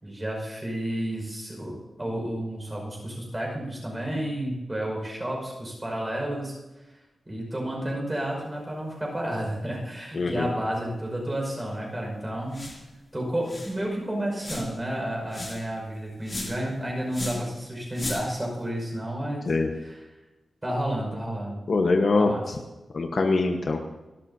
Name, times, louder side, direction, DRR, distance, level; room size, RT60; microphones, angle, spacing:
voice 1, 0.0-6.6 7.3-12.7 13.1-19.5 19.8-20.0 20.6-21.6 22.2-22.5, right 1 dB, 15° right, -1 dB, 5.3 m, -31 dB
voice 2, 10.1-10.5 19.5-19.7 21.7-22.3 22.9-23.8, left 3 dB, 50° left, 3 dB, 1.1 m, -23 dB
sound 1, 12.5-12.9 13.2-13.3 13.4-13.8 14.4-14.8 15.3-15.7 16.2-16.7 17.1-17.5 17.9-18.4, left 2 dB, 25° left, 2.8 m, -36 dB
29.0 x 12.5 x 2.8 m, 1.1 s
wide cardioid pair, 175°, 0 cm